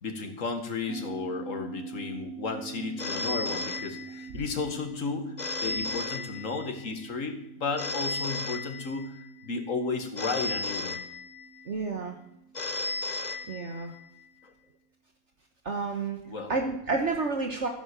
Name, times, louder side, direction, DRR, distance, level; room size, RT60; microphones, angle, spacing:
voice 1, 0.0-5.3 5.6-9.2 9.4-11.0 14.4-14.5 16.3-16.5, left 4 dB, 60° left, 6 dB, 2.1 m, -33 dB
sound 1, 0.9-13.6, right 6 dB, 5° right, 3.3 m, -45 dB
Telephone, 3.0-4.5 5.4-6.9 7.8-9.3 10.2-11.7 12.5-14.0, left 3 dB, 35° left, 0.9 m, -34 dB
voice 2, 11.7-12.2 13.5-13.9 15.6-16.2 16.5-17.7, right 3 dB, 55° right, 3 dB, 1.5 m, -30 dB
14.0 x 10.5 x 6.9 m, 0.82 s
omnidirectional pair, 1.5 m